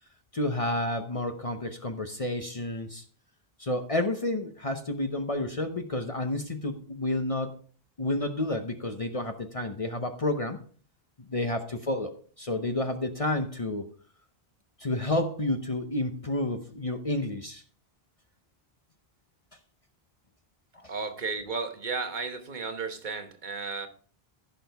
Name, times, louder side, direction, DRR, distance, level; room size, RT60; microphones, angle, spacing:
voice 1, 0.3-3.0 3.6-7.5 8.0-10.6 11.2-13.9 14.8-17.6 20.7-20.9, left 1 dB, 35° left, 6 dB, 0.9 m, -30 dB
voice 2, 20.9-23.9, right 4 dB, 50° right, 6 dB, 1.3 m, -34 dB
15.5 x 6.1 x 3.5 m, 0.43 s
omnidirectional pair, 1.0 m